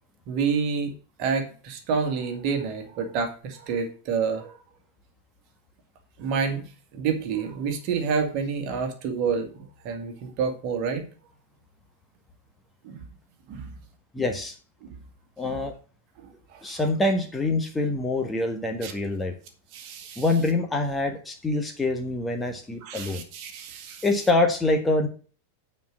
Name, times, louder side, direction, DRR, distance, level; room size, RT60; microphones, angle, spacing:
voice 1, 0.3-0.9 1.2-4.6 6.2-6.7 6.9-11.1 12.8-13.0 13.5-13.7 14.8-15.0 15.4-15.6 16.2-16.6 18.8-18.9 19.7-20.2 22.8-24.0, right 5 dB, 45° right, 5 dB, 1.9 m, -29 dB
voice 2, 14.1-14.5 15.4-15.7 16.6-19.3 20.2-23.2 24.0-25.1, left 2 dB, 10° left, 4 dB, 1.5 m, -25 dB
9.2 x 4.7 x 7.3 m, 0.39 s
figure-of-eight pair, 90°, 0 cm